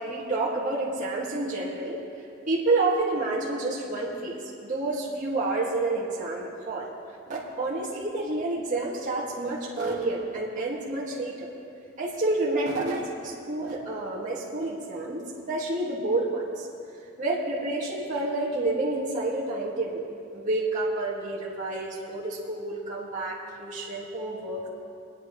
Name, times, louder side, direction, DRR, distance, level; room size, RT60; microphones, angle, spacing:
voice 1, 0.0-2.0 2.5-6.9 7.3-11.5 12.0-15.2 15.5-16.7 17.2-20.1 20.3-24.7, right 2 dB, 40° right, -7 dB, 2.0 m, -29 dB
25.5 x 9.7 x 3.1 m, 2.5 s
head